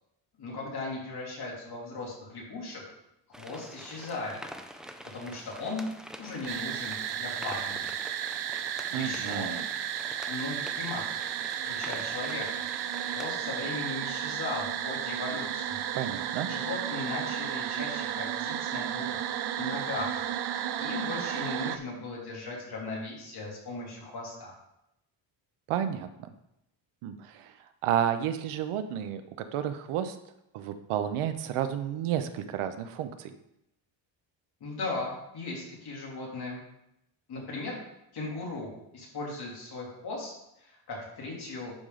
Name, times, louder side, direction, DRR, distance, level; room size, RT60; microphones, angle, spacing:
voice 1, 0.4-2.8 3.4-4.4 5.1-5.8 6.2-7.9 8.9-9.5 10.3-11.0 11.6-12.6 13.1-15.8 16.5-19.2 19.6-20.3 20.8-24.5 34.6-36.6 37.3-37.8 38.1-40.3 40.6-41.7, left 3 dB, 50° left, -4 dB, 3.1 m, -37 dB
sound 1, 3.3-13.3, equal, ahead, 0.4 m, -46 dB
sound 2, 6.5-21.8, right 10 dB, 55° right, 0.6 m, -33 dB
voice 2, 8.9-9.7 15.9-16.5 25.7-26.3 27.0-27.5 27.8-29.2 29.5-30.2 30.5-33.3, right 10 dB, 85° right, 9 dB, 0.9 m, -31 dB
11.5 x 4.9 x 3.8 m, 0.83 s
cardioid pair, 140°, 49 cm